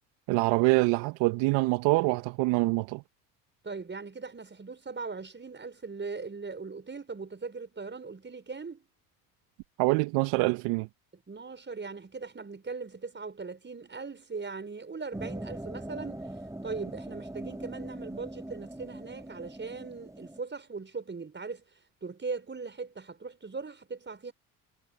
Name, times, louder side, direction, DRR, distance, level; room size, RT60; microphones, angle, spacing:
voice 1, 0.3-3.0 9.8-10.9, right 23 dB, 65° right, 1.8 m, -25 dB
voice 2, 3.6-8.8 11.1-16.3 16.6-21.6 22.0-24.3, right 4 dB, 25° right, 6.0 m, -39 dB
sound 1, 15.1-20.4, right 1 dB, 5° right, 6.4 m, -41 dB
hypercardioid pair, 65°, 46 cm